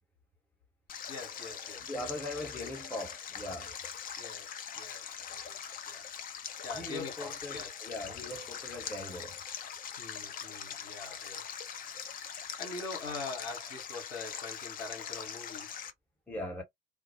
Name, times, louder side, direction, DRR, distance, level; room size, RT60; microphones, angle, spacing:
Stream, 0.9-15.9, left 8 dB, 30° left, 0.5 m, -42 dB
voice 1, 1.1-1.8 2.4-2.9 4.2-6.1 6.6-7.9 10.0-11.4 12.1-15.7, left 3 dB, 65° left, 1.2 m, -44 dB
voice 2, 1.9-3.7 6.8-9.4 16.3-16.6, left 1 dB, 5° left, 1.0 m, -40 dB
2.3 x 2.0 x 2.7 m
figure-of-eight pair, 65°, 31 cm